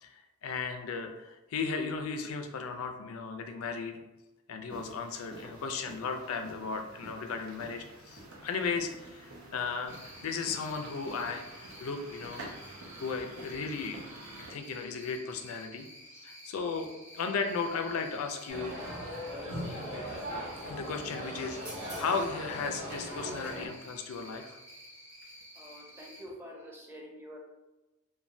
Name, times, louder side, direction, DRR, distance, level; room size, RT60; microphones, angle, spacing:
voice 1, 0.0-4.0 4.5-10.0 10.2-12.5 13.0-14.0 14.5-15.9 16.1-18.7 20.6-24.6, left 5 dB, 75° left, 6 dB, 0.4 m, -35 dB
sound 1, 4.7-14.5, right 2 dB, 85° right, 0.8 m, -49 dB
Cricket, 9.9-26.2, equal, 30° right, 0.9 m, -52 dB
sound 2, 18.5-23.7, equal, 55° right, 1.5 m, -39 dB
voice 2, 25.5-27.4, equal, 10° right, -2 dB, 0.6 m, -47 dB
3.1 x 2.1 x 2.5 m, 1.0 s
head